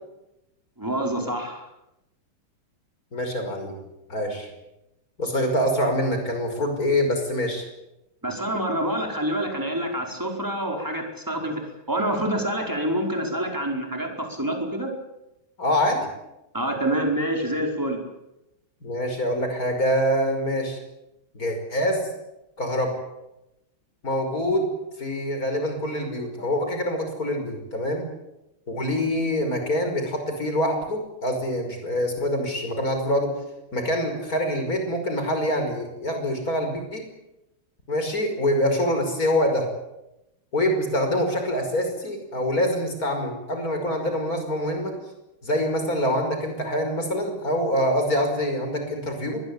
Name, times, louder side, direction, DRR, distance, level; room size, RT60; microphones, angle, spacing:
voice 1, 0.8-1.6 8.2-14.9 16.5-18.0, right 1 dB, 10° right, 2 dB, 5.0 m, -27 dB
voice 2, 3.1-3.7 4.1-4.5 5.2-7.6 15.6-16.1 18.8-20.8 21.3-22.1 22.6-22.9 24.0-24.7 25.0-28.1 28.7-33.3 33.7-37.0 37.9-39.7 40.5-44.9 45.4-49.4, equal, 45° left, 5 dB, 6.0 m, -25 dB
25.0 x 20.5 x 9.0 m, 0.92 s
omnidirectional pair, 2.2 m